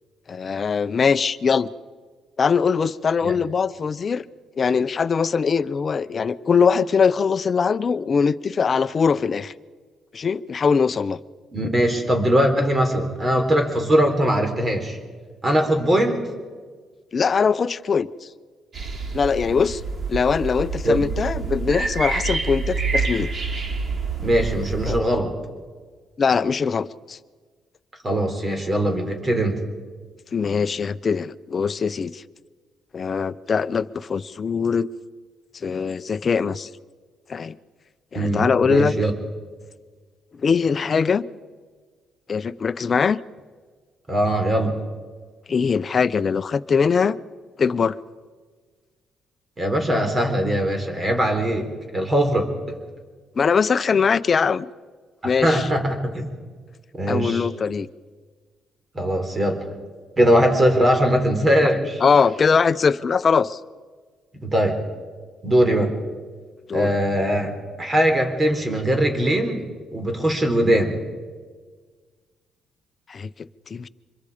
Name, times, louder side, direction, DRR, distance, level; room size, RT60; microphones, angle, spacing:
voice 1, 0.3-1.7 2.4-4.2 4.6-9.5 10.1-11.2 17.1-18.1 19.1-19.8 20.1-23.3 24.9-25.0 26.2-27.2 30.3-32.2 32.9-34.9 35.5-36.7 37.3-37.5 38.1-38.9 40.4-41.2 42.3-43.2 45.5-47.2 47.6-48.0 53.4-54.7 55.2-55.7 57.1-57.9 61.6-61.7 62.0-63.6 66.7-66.9 73.1-73.3 73.7-73.9, left 5 dB, 40° left, 15 dB, 0.7 m, -21 dB
voice 2, 11.5-15.0 15.4-16.2 20.8-21.0 24.2-25.3 28.0-29.6 38.1-39.1 44.1-44.8 49.6-52.5 55.4-56.3 56.9-57.5 58.9-59.6 60.2-62.0 64.4-64.8 65.4-66.0 66.7-71.0, equal, 30° right, 5 dB, 4.0 m, -21 dB
sound 1, 18.7-25.0, right 4 dB, 45° right, 3.0 m, -27 dB
25.5 x 22.0 x 5.0 m, 1.5 s
cardioid pair, 90°, 0 cm